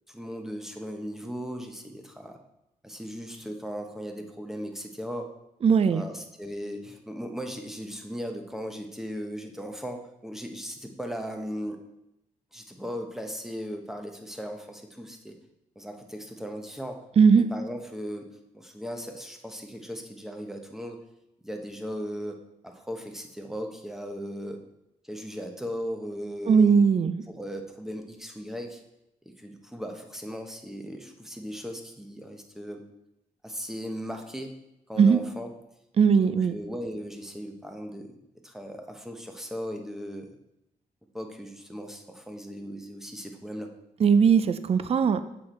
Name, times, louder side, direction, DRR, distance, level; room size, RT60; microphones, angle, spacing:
voice 1, 0.1-2.4 2.8-5.3 5.9-11.8 12.5-15.4 15.7-17.0 17.4-18.3 18.5-21.0 21.4-22.4 22.6-24.6 25.0-26.7 27.3-28.8 29.2-32.8 33.4-34.5 34.9-35.5 36.1-38.2 38.4-40.3 41.1-43.7, equal, 5° right, 3 dB, 1.1 m, -37 dB
voice 2, 5.6-6.0 17.2-17.5 26.5-27.2 35.0-35.2 36.0-36.5 44.0-45.2, right 6 dB, 45° right, 12 dB, 0.5 m, -19 dB
7.5 x 6.2 x 4.3 m, 0.86 s
cardioid pair, 90°, 14 cm